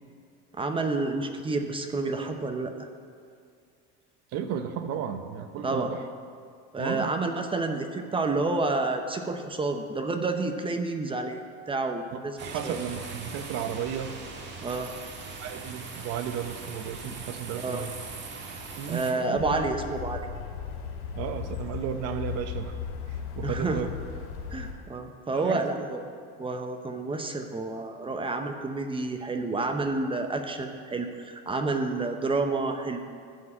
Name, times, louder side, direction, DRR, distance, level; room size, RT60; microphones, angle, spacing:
voice 1, 0.5-2.9 5.6-5.9 6.7-12.4 12.6-12.9 14.6-14.9 17.6-17.8 18.5-18.6 18.9-20.3 23.4-23.8 24.5-26.0 26.4-33.0, right 3 dB, 15° right, 6 dB, 0.7 m, -29 dB
voice 2, 4.3-6.0 6.8-7.1 12.1-14.1 15.4-17.9 18.8-19.6 21.2-22.8 23.1-23.9 25.3-25.8, right 8 dB, 50° right, 8 dB, 0.9 m, -34 dB
sound 1, 12.4-19.1, right 3 dB, 35° right, 1.6 m, -40 dB
sound 2, 19.3-24.7, left 7 dB, 65° left, 2.4 m, -36 dB
13.0 x 4.6 x 8.7 m, 2.3 s
supercardioid pair, 130°, 31 cm